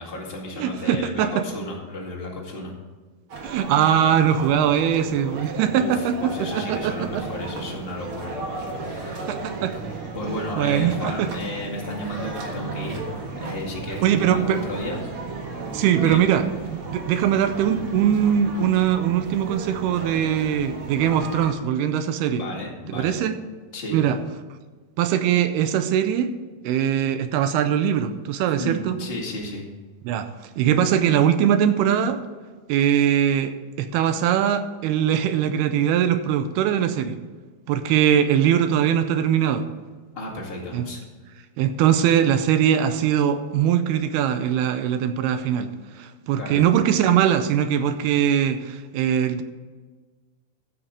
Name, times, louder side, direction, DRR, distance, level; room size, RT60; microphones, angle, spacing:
voice 1, 0.0-2.7 5.7-8.4 8.8-9.3 10.1-13.1 13.4-15.1 16.0-16.2 22.2-23.1 23.7-24.0 28.6-29.6 40.1-41.0 46.4-46.6, left 1 dB, 25° left, -2 dB, 1.2 m, -33 dB
voice 2, 0.6-1.4 3.4-7.3 9.3-9.8 10.6-11.3 14.0-14.6 15.7-22.4 22.9-23.3 23.9-24.2 25.0-26.3 26.6-29.0 30.1-30.3 30.6-32.2 32.7-37.2 37.7-39.7 40.7-40.9 41.6-45.7 46.0-49.4, right 9 dB, 80° right, 9 dB, 2.5 m, -21 dB
sound 1, 3.3-21.5, right 3 dB, 50° right, 1.7 m, -34 dB
15.0 x 5.7 x 5.0 m, 1.4 s
omnidirectional pair, 4.7 m